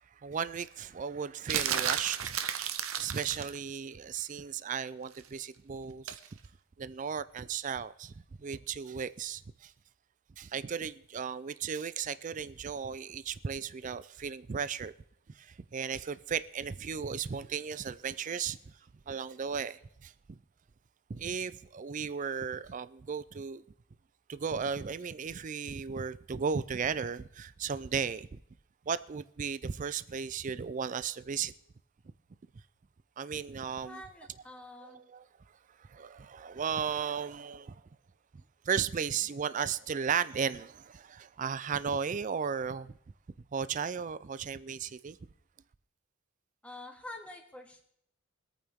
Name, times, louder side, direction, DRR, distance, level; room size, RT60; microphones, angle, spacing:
voice 1, 0.2-2.4 3.0-6.4 6.8-8.1 8.4-9.7 10.4-14.9 15.3-18.7 19.1-20.4 21.1-23.6 24.3-28.4 28.9-31.5 33.2-34.0 34.8-35.3 35.8-37.8 38.7-42.9 43.5-45.2, right 6 dB, 35° right, 0.4 m, -35 dB
sound 1, 1.5-3.6 6.1-6.3, right 9 dB, 85° right, 0.9 m, -32 dB
voice 2, 33.8-35.0 46.6-47.8, left 2 dB, 5° left, 1.6 m, -47 dB
24.0 x 9.0 x 3.6 m
head